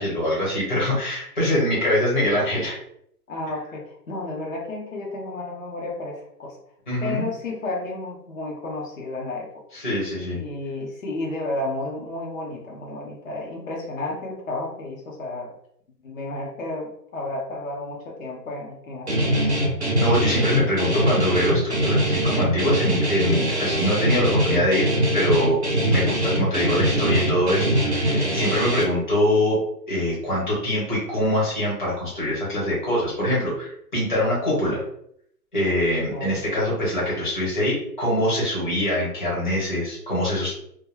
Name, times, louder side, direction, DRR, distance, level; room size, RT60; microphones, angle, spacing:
voice 1, 0.0-2.8 6.9-7.3 9.7-10.4 20.0-24.9 25.1-25.6 25.8-29.6 29.9-34.8 35.5-40.6, left 1 dB, 30° left, -6 dB, 1.0 m, -24 dB
voice 2, 3.3-6.6 7.0-9.5 10.3-15.5 16.0-19.5 20.5-20.6 36.1-36.4, left 2 dB, 55° left, -2 dB, 0.7 m, -32 dB
Guitar, 19.1-28.8, equal, 45° right, 0.4 m, -22 dB
2.3 x 2.1 x 3.2 m, 0.71 s
hypercardioid pair, 175°, 50 cm